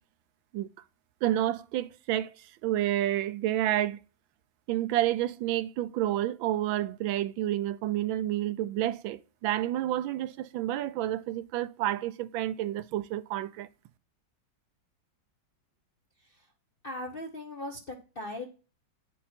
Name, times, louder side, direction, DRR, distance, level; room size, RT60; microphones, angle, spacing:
voice 1, 1.2-4.0 4.7-13.7, right 13 dB, 85° right, 1.4 m, -29 dB
voice 2, 16.8-18.5, left 1 dB, 50° left, 0.6 m, -38 dB
9.0 x 5.5 x 4.3 m
omnidirectional pair, 2.1 m